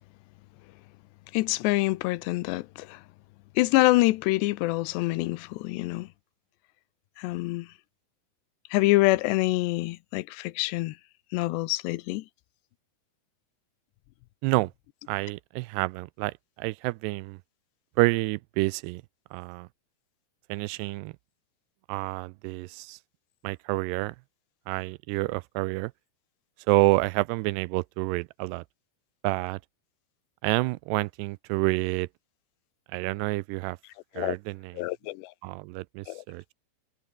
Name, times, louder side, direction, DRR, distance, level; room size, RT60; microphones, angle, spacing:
voice 1, 1.3-3.0 3.6-6.1 7.2-7.7 8.7-11.0 11.3-12.2 34.2-34.4 34.8-35.3 36.1-36.2, left 19 dB, 85° left, 2.9 m, -26 dB
voice 2, 15.1-17.4 18.0-19.0 19.3-19.7 20.5-21.1 21.9-23.0 23.4-24.2 24.7-25.9 26.7-28.6 29.2-29.6 30.4-32.1 32.9-33.8 34.2-34.9 35.4-36.4, right 22 dB, 85° right, 2.6 m, -28 dB
omnidirectional pair, 4.9 m